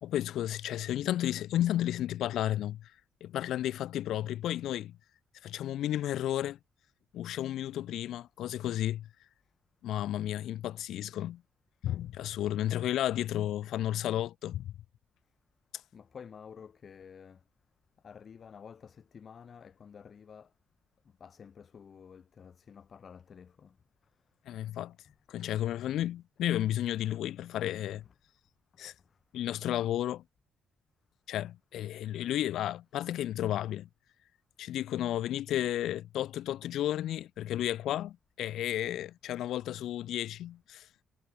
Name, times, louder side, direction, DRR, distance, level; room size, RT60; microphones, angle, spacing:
voice 1, 0.0-2.9 3.2-5.0 5.4-6.6 7.1-9.1 9.8-11.4 11.8-14.7 24.5-25.0 25.3-28.0 28.8-28.9 29.3-30.2 31.3-33.9 34.6-40.9, left 12 dB, 80° left, 0.4 m, -32 dB
voice 2, 15.9-17.4 18.0-20.5 21.0-23.8 24.0-24.1 25.0-25.2 28.0-28.1 28.7-29.2 39.4-39.5, left 7 dB, 50° left, 2.6 m, -51 dB
cardioid pair, 90°, 0 cm